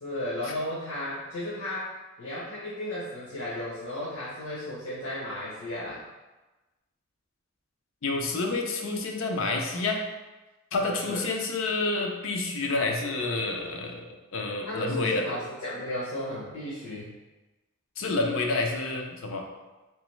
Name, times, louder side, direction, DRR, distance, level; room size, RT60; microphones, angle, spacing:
voice 1, 0.0-6.0 10.8-11.2 14.6-17.1, left 1 dB, 80° left, -8 dB, 1.0 m, -34 dB
voice 2, 8.0-10.0 10.7-15.2 18.0-19.4, left 3 dB, 60° left, 2 dB, 0.5 m, -29 dB
3.3 x 3.0 x 3.1 m, 1.1 s
head